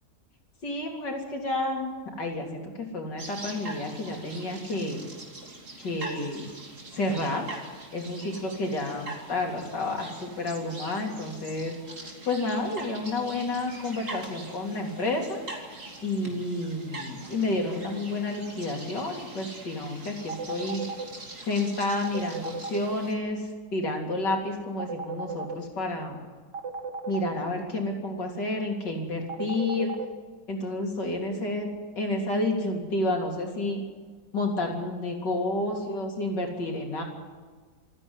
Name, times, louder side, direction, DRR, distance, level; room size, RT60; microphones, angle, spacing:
voice 1, 0.6-1.9 2.2-5.0 5.8-6.4 6.9-7.5 7.9-15.4 16.0-20.8 21.4-26.2 27.1-29.9 30.5-31.7 32.0-33.8 34.3-37.0, left 2 dB, 75° left, 1 dB, 4.1 m, -30 dB
sound 1, 3.2-23.1, right 2 dB, 45° right, 3.3 m, -43 dB
sound 2, 20.3-21.0 22.0-22.8 24.8-25.5 26.5-27.3 29.3-30.0, right 4 dB, 75° right, 2.5 m, -34 dB
27.0 x 9.9 x 9.9 m, 1.5 s
omnidirectional pair, 1.9 m